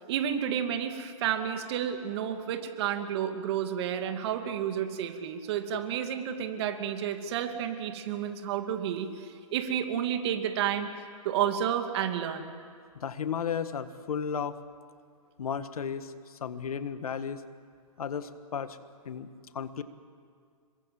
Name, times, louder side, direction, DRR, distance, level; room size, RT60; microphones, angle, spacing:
voice 1, 0.0-12.5, right 9 dB, 45° right, 6 dB, 2.6 m, -31 dB
voice 2, 12.9-14.6 15.4-17.4 18.0-18.8 19.0-19.3 19.5-19.8, left 7 dB, 80° left, 11 dB, 1.7 m, -34 dB
26.5 x 23.0 x 7.8 m, 2.1 s
hypercardioid pair, 140°, 19 cm